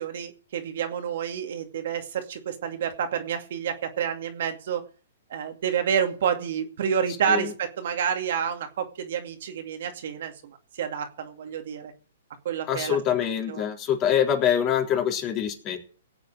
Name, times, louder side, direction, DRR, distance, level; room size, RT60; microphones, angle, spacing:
voice 1, 0.0-4.8 5.3-11.9 12.4-13.0 13.5-13.6, right 8 dB, 60° right, 5 dB, 2.4 m, -29 dB
voice 2, 12.7-15.9, left 9 dB, 30° left, 2 dB, 3.7 m, -25 dB
18.0 x 8.0 x 6.3 m, 0.39 s
hypercardioid pair, 135°, 0 cm